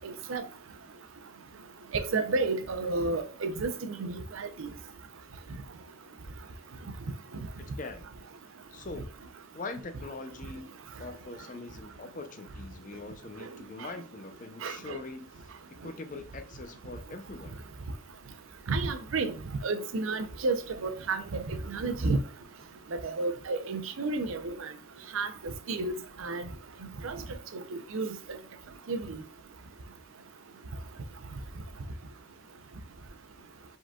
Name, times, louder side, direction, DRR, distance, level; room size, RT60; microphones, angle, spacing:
voice 1, 1.9-4.7 14.6-15.0 18.7-19.3 19.6-22.2 22.9-24.7 25.1-25.9 26.2-26.5 27.0-27.2 27.7-28.1 28.9-29.0, right 3 dB, 85° right, 0.6 m, -31 dB
voice 2, 8.7-9.1 9.5-10.7 11.0-15.3 15.8-17.6, left 3 dB, 40° left, 0.6 m, -42 dB
5.0 x 3.8 x 2.3 m
head